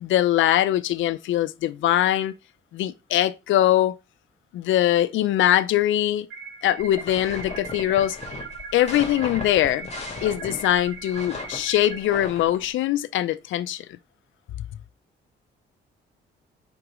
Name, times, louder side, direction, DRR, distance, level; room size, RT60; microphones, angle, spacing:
voice 1, 0.0-2.3 2.7-4.0 4.5-6.3 6.6-8.2 8.7-9.9 10.2-13.8, left 13 dB, 80° left, 0.5 m, -22 dB
sound 1, 6.3-12.1, right 4 dB, 75° right, 1.4 m, -39 dB
sound 2, 6.8-12.6, left 4 dB, 35° left, 2.1 m, -37 dB
4.9 x 4.1 x 4.8 m
cardioid pair, 90°, 20 cm